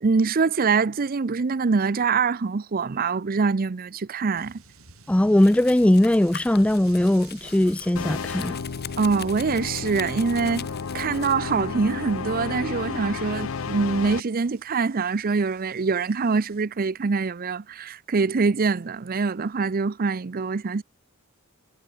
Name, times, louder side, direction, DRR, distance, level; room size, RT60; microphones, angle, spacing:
voice 1, 0.0-4.6 9.0-10.7 10.9-20.8, right 4 dB, 45° right, 0.5 m, -24 dB
sound 1, 4.3-16.7, right 6 dB, 80° right, 6.1 m, -54 dB
voice 2, 5.1-8.6, left 1 dB, 5° left, 0.3 m, -19 dB
Domestic sounds home sounds, 5.4-11.3, left 9 dB, 50° left, 6.5 m, -42 dB
sound 2, 8.0-14.2, left 5 dB, 70° left, 0.6 m, -32 dB
head